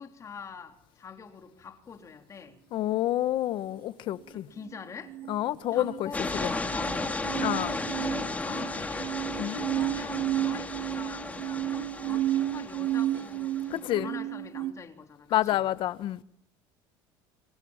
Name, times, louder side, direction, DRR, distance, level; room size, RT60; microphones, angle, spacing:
voice 1, 0.0-2.6 4.3-5.1 5.7-7.3 7.9-9.1 9.6-15.6, left 6 dB, 30° left, 3.7 m, -45 dB
voice 2, 2.7-4.5 5.3-6.5 7.4-7.8 9.4-9.6 13.7-14.1 15.3-16.2, left 13 dB, 55° left, 1.4 m, -29 dB
sound 1, 5.1-14.7, right 14 dB, 65° right, 1.2 m, -32 dB
sound 2, 6.1-13.8, left 3 dB, 15° left, 4.4 m, -34 dB
28.0 x 27.5 x 7.4 m
cardioid pair, 120°, 10 cm